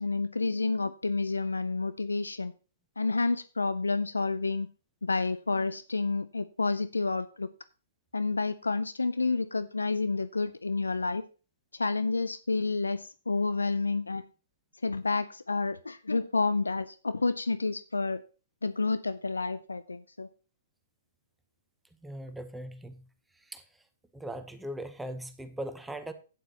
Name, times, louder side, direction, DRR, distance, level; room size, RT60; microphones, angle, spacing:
voice 1, 0.0-2.5 3.0-4.7 5.0-7.5 8.1-11.2 11.7-14.2 14.8-18.2 18.6-20.3, left 3 dB, 90° left, 14 dB, 0.5 m, -29 dB
voice 2, 22.0-23.0 23.3-23.6 24.1-26.1, right 1 dB, 5° right, 9 dB, 0.9 m, -39 dB
11.5 x 9.3 x 2.9 m, 0.34 s
hypercardioid pair, 125°, 0 cm